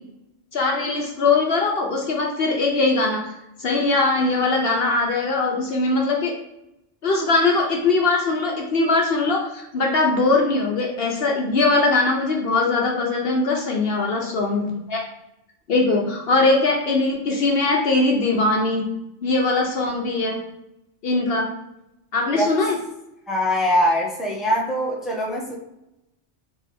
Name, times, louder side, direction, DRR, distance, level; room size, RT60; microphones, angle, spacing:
voice 1, 0.5-3.3 3.6-6.3 7.0-15.0 15.7-18.8 19.2-20.4 21.0-21.5 22.1-22.8, left 3 dB, 60° left, 0 dB, 0.9 m, -21 dB
voice 2, 23.3-25.6, equal, ahead, -3 dB, 0.8 m, -22 dB
3.7 x 3.3 x 4.1 m, 0.89 s
omnidirectional pair, 1.2 m